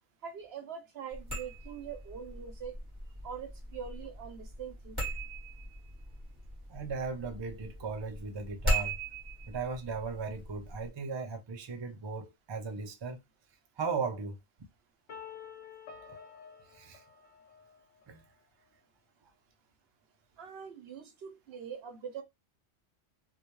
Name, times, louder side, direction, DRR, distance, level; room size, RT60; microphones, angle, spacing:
voice 1, 0.2-2.8 3.2-5.0 20.4-22.2, right 7 dB, 65° right, 0.9 m, -43 dB
sound 1, 1.1-10.9, right 1 dB, 20° right, 1.1 m, -39 dB
voice 2, 6.7-9.0 9.5-13.2 13.8-14.4 16.7-17.0 18.1-18.2, right 4 dB, 45° right, 0.3 m, -37 dB
sound 2, 15.1-18.0, left 7 dB, 70° left, 0.9 m, -49 dB
2.3 x 2.2 x 2.9 m
omnidirectional pair, 1.2 m